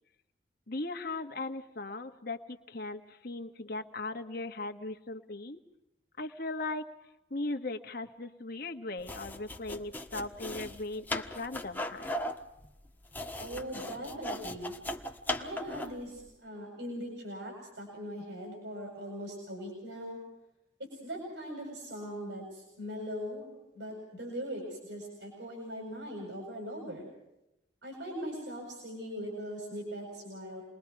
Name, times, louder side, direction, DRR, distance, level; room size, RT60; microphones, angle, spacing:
voice 1, 0.7-5.6 6.2-6.9 7.3-12.1, left 2 dB, 55° left, 5 dB, 1.6 m, -38 dB
sound 1, 9.0-16.0, left 1 dB, 10° left, 1.4 m, -38 dB
voice 2, 13.4-14.7 15.4-20.2 21.0-27.1 27.8-30.6, equal, 75° right, 0 dB, 7.9 m, -40 dB
29.0 x 22.0 x 4.9 m, 0.90 s
head